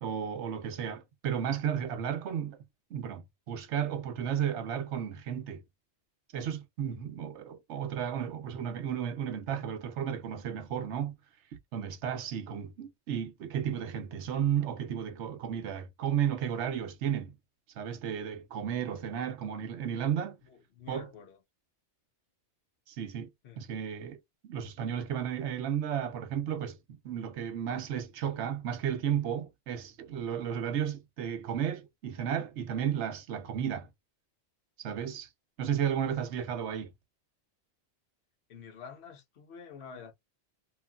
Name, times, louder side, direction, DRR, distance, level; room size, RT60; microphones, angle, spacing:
voice 1, 0.0-2.6 2.9-5.6 6.3-11.1 11.7-17.3 17.8-20.4 20.9-21.1 22.9-23.3 23.6-24.2 24.4-26.8 27.0-33.9 34.8-35.3 35.6-36.9, right 9 dB, 80° right, 0.9 m, -33 dB
voice 2, 20.4-21.4 23.4-23.6 38.5-40.1, left 6 dB, 70° left, 1.1 m, -48 dB
3.1 x 2.5 x 2.2 m
omnidirectional pair, 1.2 m